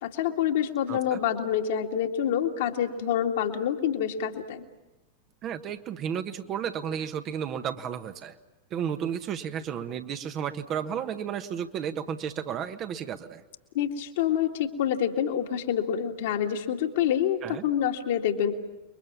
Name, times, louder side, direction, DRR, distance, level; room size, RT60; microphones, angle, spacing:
voice 1, 0.0-4.6 13.7-18.5, left 9 dB, 55° left, 4 dB, 2.2 m, -27 dB
voice 2, 0.9-1.2 5.4-8.3 8.7-13.4 17.4-17.6, right 8 dB, 35° right, 8 dB, 1.4 m, -33 dB
29.5 x 22.5 x 7.4 m, 1.0 s
figure-of-eight pair, 90°, 0 cm